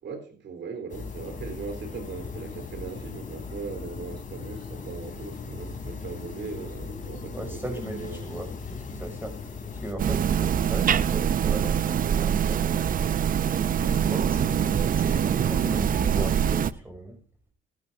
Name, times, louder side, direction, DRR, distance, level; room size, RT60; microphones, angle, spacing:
voice 1, 0.0-8.4 14.0-14.9, right 5 dB, 65° right, 3.9 m, -39 dB
sound 1, 0.9-9.9, left 4 dB, 40° left, 3.4 m, -38 dB
voice 2, 7.3-13.1 13.8-17.2, right 1 dB, 10° right, 6.2 m, -38 dB
sound 2, 10.0-16.7, right 8 dB, 45° right, 0.6 m, -24 dB
15.5 x 13.5 x 2.7 m
cardioid pair, 90°, 20 cm